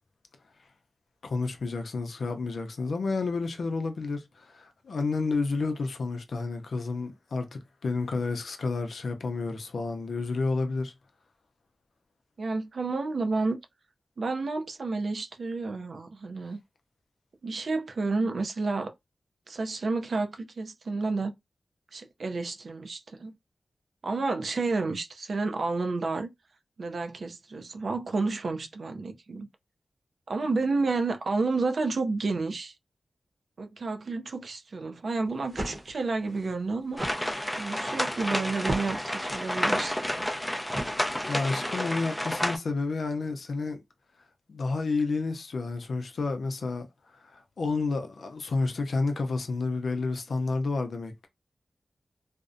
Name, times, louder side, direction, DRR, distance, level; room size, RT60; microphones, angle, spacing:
voice 1, 1.2-10.9 41.0-43.8 44.5-46.9 47.3-51.3, left 3 dB, 80° left, 0.5 m, -30 dB
voice 2, 12.4-13.6 14.2-16.6 17.4-18.9 19.5-21.3 21.9-23.3 24.0-26.3 26.8-29.5 30.3-32.7 33.6-37.0 37.6-40.3, right 3 dB, 70° right, 0.4 m, -30 dB
sound 1, 35.3-41.5, right 1 dB, 35° right, 0.7 m, -39 dB
sound 2, 37.0-42.6, left 1 dB, 10° left, 0.4 m, -30 dB
2.5 x 2.0 x 2.4 m
wide cardioid pair, 70°, 0 cm